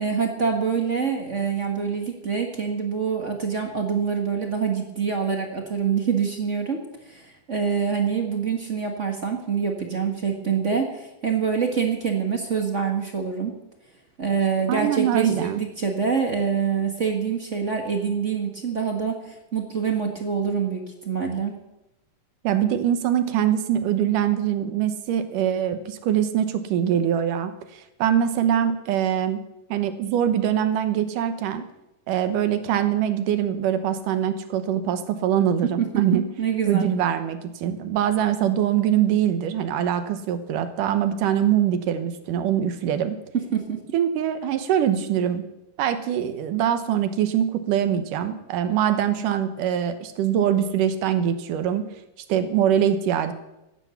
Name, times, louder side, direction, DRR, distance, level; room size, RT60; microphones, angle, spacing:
voice 1, 0.0-6.8 7.1-13.5 14.2-21.5 36.1-36.9 43.3-43.8, right 6 dB, 50° right, 2 dB, 0.9 m, -25 dB
voice 2, 14.7-15.6 22.4-29.4 29.7-31.7 32.1-36.2 36.7-43.2 43.9-45.5 45.8-51.9 52.3-53.3, right 10 dB, 75° right, 10 dB, 2.5 m, -23 dB
15.5 x 9.9 x 7.0 m, 0.92 s
omnidirectional pair, 4.0 m